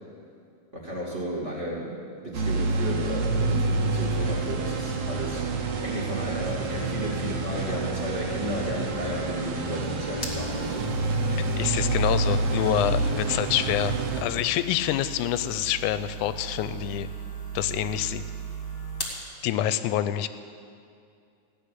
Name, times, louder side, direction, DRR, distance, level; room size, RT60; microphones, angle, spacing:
voice 1, 0.7-10.9, equal, 25° right, -4 dB, 2.0 m, -33 dB
sound 1, 2.3-14.2, right 3 dB, 70° right, 2.4 m, -28 dB
sound 2, 9.6-19.2, right 5 dB, 15° left, 1.7 m, -39 dB
voice 2, 11.4-14.0 14.2-17.1 17.6-18.2 19.4-20.3, left 12 dB, 80° left, 13 dB, 1.9 m, -27 dB
15.5 x 6.5 x 9.9 m, 2.4 s
omnidirectional pair, 3.7 m